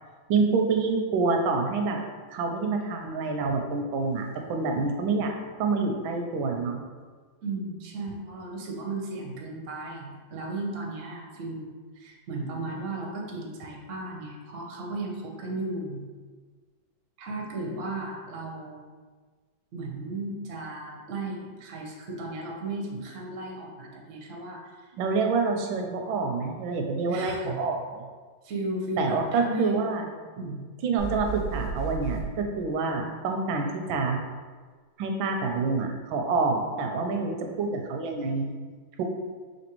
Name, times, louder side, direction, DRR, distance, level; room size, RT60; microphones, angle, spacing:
voice 1, 0.3-2.0 2.3-5.3 5.6-6.8 25.0-28.0 29.0-30.1 30.8-34.2 35.0-38.5 39.0-39.1, right 4 dB, 90° right, 3 dB, 1.4 m, -27 dB
voice 2, 7.4-16.1 17.2-18.9 19.7-24.9 27.1-27.6 28.4-29.8 30.4-30.6, right 2 dB, 60° right, -1 dB, 0.8 m, -35 dB
sound 1, 31.0-32.3, right 5 dB, 55° left, 1.4 m, -33 dB
5.1 x 2.9 x 2.9 m, 1.5 s
omnidirectional pair, 2.1 m